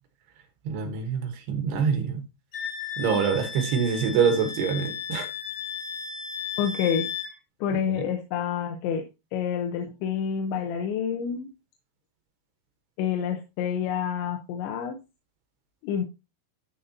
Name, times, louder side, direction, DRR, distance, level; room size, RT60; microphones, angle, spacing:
voice 1, 0.6-2.2 3.0-5.3 8.0-8.1, right 6 dB, 70° right, 3.1 m, -25 dB
Wind instrument woodwind instrument, 2.5-7.3, left 7 dB, 40° left, 3.3 m, -35 dB
voice 2, 6.6-7.1 7.6-9.1 9.3-11.5 13.0-15.0 15.8-16.1, left 8 dB, 90° left, 3.2 m, -28 dB
12.5 x 5.2 x 2.7 m
omnidirectional pair, 5.1 m